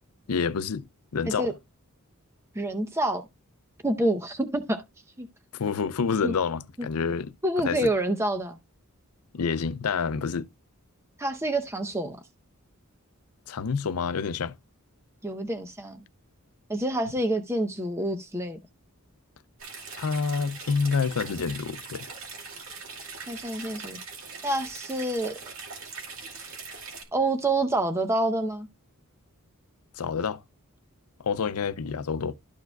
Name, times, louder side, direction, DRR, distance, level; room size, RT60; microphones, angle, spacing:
voice 1, 0.3-0.8 1.1-1.5 5.5-7.9 9.3-10.5 13.5-14.6 20.0-22.1 30.0-30.4 31.2-32.3, left 5 dB, 80° left, 0.5 m, -28 dB
voice 2, 2.6-3.2 3.8-4.8 5.2-5.3 6.2-6.3 7.4-8.6 11.2-12.2 15.2-16.0 16.7-18.6 23.3-24.0 24.4-25.3 27.1-28.7, right 1 dB, 10° right, 0.7 m, -27 dB
sound 1, 19.6-27.0, right 4 dB, 65° right, 2.5 m, -41 dB
13.0 x 4.6 x 2.2 m
head